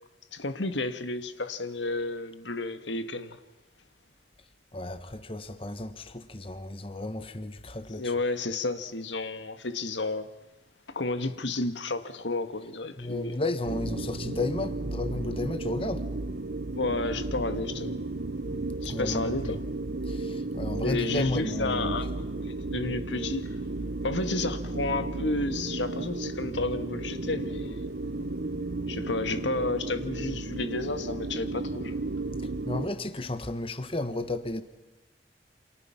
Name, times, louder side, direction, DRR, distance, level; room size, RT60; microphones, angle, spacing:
voice 1, 0.3-3.4 8.0-10.3 10.9-13.3 16.8-18.0 18.8-19.6 20.8-23.5 24.0-27.9 28.9-32.0, left 2 dB, 90° left, 1.7 m, -31 dB
voice 2, 4.7-8.1 13.0-16.0 18.8-19.5 20.1-22.0 32.7-34.6, left 2 dB, 30° left, 1.3 m, -33 dB
sound 1, 13.7-32.9, right 2 dB, 60° right, 0.9 m, -34 dB
29.5 x 27.0 x 5.9 m
head